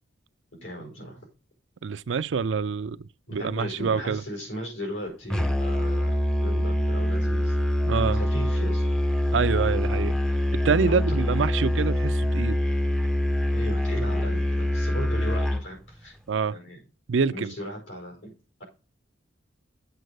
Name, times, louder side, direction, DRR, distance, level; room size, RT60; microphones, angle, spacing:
voice 1, 0.5-1.2 3.3-7.6 8.1-8.8 10.8-11.2 13.5-16.2 16.5-16.8 17.3-18.3, equal, 85° left, 5.1 m, -37 dB
voice 2, 1.8-4.2 7.8-8.2 9.3-10.2 10.6-12.6 16.3-16.6 17.1-17.5, right 5 dB, 75° right, 0.4 m, -26 dB
Musical instrument, 5.3-15.7, left 1 dB, 5° left, 0.5 m, -24 dB
8.0 x 4.6 x 6.5 m
head